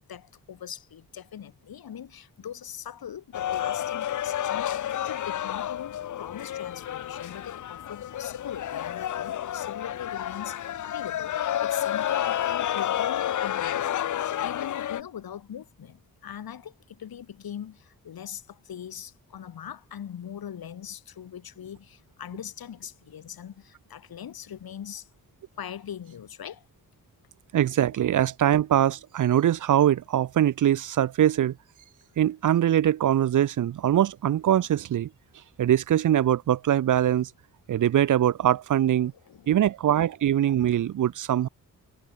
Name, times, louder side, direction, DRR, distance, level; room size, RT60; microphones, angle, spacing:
voice 1, 0.1-25.1 25.6-26.7 39.0-39.6, left 9 dB, 85° left, 3.0 m, -41 dB
sound 1, 3.3-15.0, left 11 dB, 55° left, 0.6 m, -30 dB
voice 2, 27.5-31.5 32.2-35.1 35.6-37.3 37.7-39.1 39.5-41.5, right 11 dB, 60° right, 0.6 m, -22 dB
cardioid pair, 85°, 35 cm